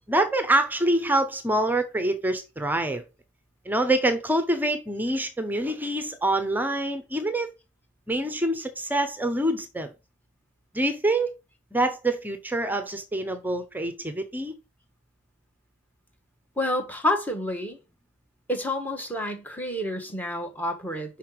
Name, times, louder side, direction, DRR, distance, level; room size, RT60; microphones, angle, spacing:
voice 1, 0.1-3.0 3.6-7.5 8.1-9.9 10.7-11.3 11.7-14.5, right 1 dB, 10° right, 0.7 m, -25 dB
voice 2, 16.6-17.8 18.5-21.2, left 1 dB, 10° left, 1.2 m, -29 dB
5.7 x 5.6 x 4.7 m
head